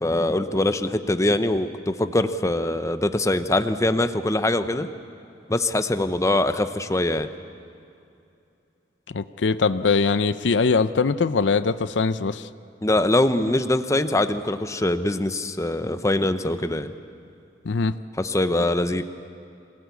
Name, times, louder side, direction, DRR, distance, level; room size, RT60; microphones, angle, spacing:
voice 1, 0.0-4.9 5.5-7.3 12.8-16.9 18.2-19.0, left 1 dB, 15° left, 10 dB, 0.7 m, -23 dB
voice 2, 9.1-12.5 17.6-17.9, left 4 dB, 80° left, 13 dB, 0.6 m, -22 dB
26.5 x 18.0 x 8.3 m, 2.6 s
head